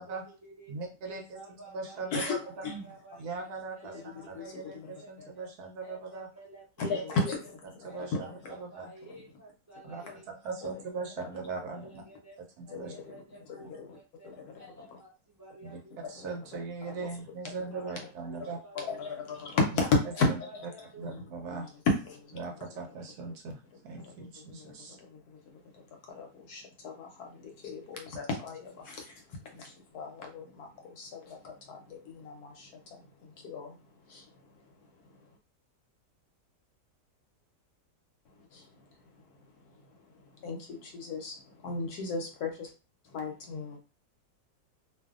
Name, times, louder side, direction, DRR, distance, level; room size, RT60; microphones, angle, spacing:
voice 1, 0.0-7.5 7.8-12.4 12.6-16.4 17.0-19.3 20.1-21.1, right 2 dB, 30° right, -5 dB, 0.3 m, -53 dB
voice 2, 0.7-1.2 1.7-2.6 3.2-6.3 6.9-7.0 7.8-8.9 9.8-10.0 10.4-12.0 12.6-12.9 15.7-15.8 16.1-18.6 20.3-20.4 21.0-21.7 22.4-25.0, right 4 dB, 70° right, 2 dB, 1.0 m, -39 dB
voice 3, 2.1-2.8 4.4-4.9 6.8-7.6 8.0-8.6 10.0-10.1 11.2-11.3 11.7-11.8 12.7-13.2 13.7-14.0 14.2-14.7 16.2-16.3 16.9-17.1 18.5-20.7 21.1-22.4 24.0-33.8 34.0-34.3 35.1-35.2 38.5-38.8 39.2-39.3 39.9-42.7 43.0-43.8, left 3 dB, 70° left, 2 dB, 1.0 m, -35 dB
2.6 x 2.5 x 2.4 m, 0.33 s
omnidirectional pair, 1.9 m